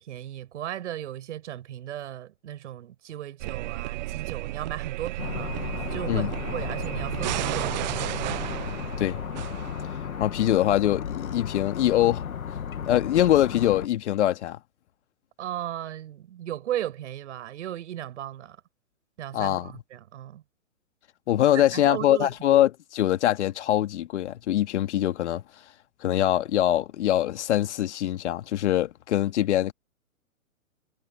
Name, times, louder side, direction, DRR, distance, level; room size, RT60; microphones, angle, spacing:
voice 1, 0.0-8.5 15.4-18.6 19.2-20.4 21.5-22.6, right 12 dB, 55° right, 6.9 m, -36 dB
sound 1, 3.4-10.2, right 17 dB, 35° right, 0.6 m, -33 dB
sound 2, 5.2-13.9, left 8 dB, 80° left, 1.9 m, -34 dB
voice 2, 10.2-12.2 12.9-14.6 19.3-19.7 21.3-25.4 26.0-29.7, left 12 dB, 55° left, 2.1 m, -23 dB
hypercardioid pair, 130°, 42 cm